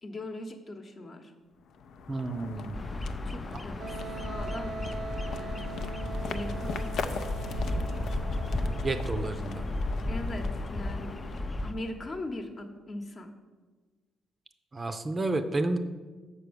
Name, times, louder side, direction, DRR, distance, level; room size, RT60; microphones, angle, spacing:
voice 1, 0.0-1.3 3.2-4.7 5.3-5.7 6.2-6.9 7.5-8.0 10.1-11.2 11.6-13.3, left 1 dB, 40° left, 5 dB, 1.0 m, -40 dB
sound 1, 1.6-12.3, left 5 dB, 70° left, 0.5 m, -40 dB
voice 2, 2.1-2.8 3.5-3.6 8.8-9.7 14.7-15.8, right 2 dB, 30° right, 8 dB, 0.5 m, -31 dB
Bird vocalization bird call bird song, 2.7-11.7, left 1 dB, 20° left, 0.5 m, -34 dB
Wind instrument woodwind instrument, 3.8-9.4, right 4 dB, 70° right, 0.7 m, -42 dB
6.9 x 4.6 x 6.9 m, 1.4 s
cardioid pair, 90°, 0 cm